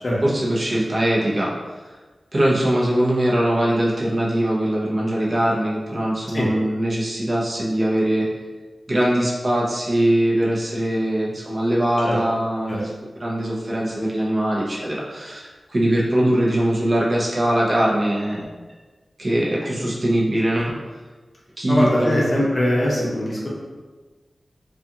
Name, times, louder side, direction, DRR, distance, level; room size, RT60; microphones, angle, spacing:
voice 1, 0.2-1.5 2.3-8.3 8.9-12.9 13.2-18.5 19.2-20.7 21.6-22.3, right 1 dB, 50° right, -5 dB, 0.7 m, -21 dB
voice 2, 21.7-23.5, left 1 dB, 40° left, -4 dB, 0.5 m, -21 dB
2.4 x 2.3 x 2.7 m, 1.3 s
wide cardioid pair, 90°, 0 cm